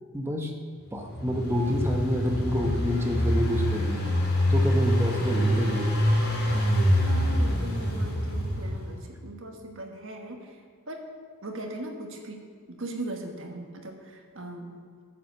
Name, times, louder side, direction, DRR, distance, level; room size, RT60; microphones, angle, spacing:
voice 1, 0.1-0.5 0.9-4.1 4.5-6.0, left 1 dB, 10° right, 2 dB, 1.0 m, -28 dB
Engine, 1.0-9.0, equal, 80° left, 2.5 m, -25 dB
voice 2, 7.0-10.6 10.9-11.1 11.4-12.4 12.7-14.8, right 2 dB, 60° right, 2 dB, 1.5 m, -39 dB
8.9 x 7.8 x 6.9 m, 2.1 s
head